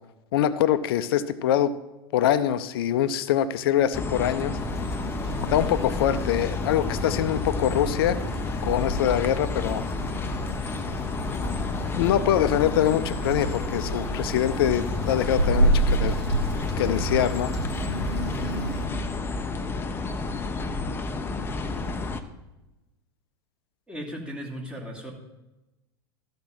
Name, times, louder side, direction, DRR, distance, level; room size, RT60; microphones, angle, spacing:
voice 1, 0.3-1.7 2.1-4.6 5.5-8.2 8.6-9.8 11.9-16.1 16.8-17.5, left 11 dB, 65° left, 13 dB, 0.7 m, -24 dB
sound 1, 3.9-22.2, left 3 dB, 15° left, 0.8 m, -30 dB
sound 2, 4.5-18.9, right 1 dB, 90° right, 2.7 m, -30 dB
voice 2, 23.9-25.1, equal, 5° right, -2 dB, 2.7 m, -36 dB
13.5 x 5.2 x 6.0 m, 1.0 s
hypercardioid pair, 95°, 14 cm